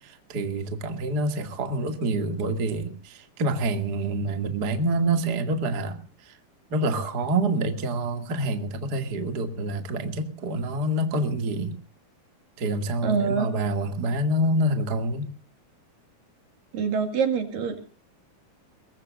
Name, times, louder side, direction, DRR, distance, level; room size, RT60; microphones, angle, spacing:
voice 1, 0.0-6.0 6.3-6.4 6.7-11.7 12.6-15.3, right 1 dB, 30° right, 7 dB, 1.9 m, -27 dB
voice 2, 13.0-13.5 16.7-17.9, right 6 dB, 60° right, 7 dB, 3.7 m, -25 dB
22.5 x 21.0 x 2.5 m, 0.37 s
omnidirectional pair, 4.8 m